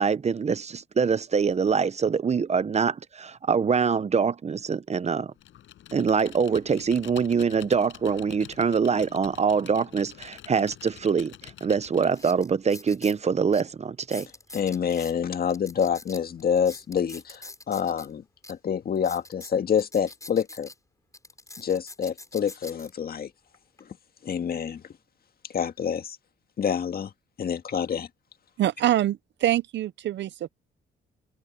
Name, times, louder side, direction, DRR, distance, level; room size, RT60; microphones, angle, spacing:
voice 1, 0.0-5.3 5.9-14.3, right 6 dB, 35° right, 0.8 m, -24 dB
Computer keyboard, 5.4-12.2, left 12 dB, 75° left, 6.2 m, -47 dB
sound 1, 11.4-11.5 12.1-13.2 13.5-13.6 14.0-15.1 15.5-18.1 18.4-18.5 18.9-20.7 21.1-22.9 23.5-23.8, left 2 dB, 15° left, 7.7 m, -44 dB
voice 2, 14.5-18.2 18.5-20.7 21.6-23.3 24.2-24.8 25.5-26.2 26.6-27.1 27.4-28.1, left 7 dB, 50° left, 1.8 m, -27 dB
voice 3, 28.6-30.5, right 13 dB, 65° right, 0.7 m, -25 dB
cardioid pair, 90°, 20 cm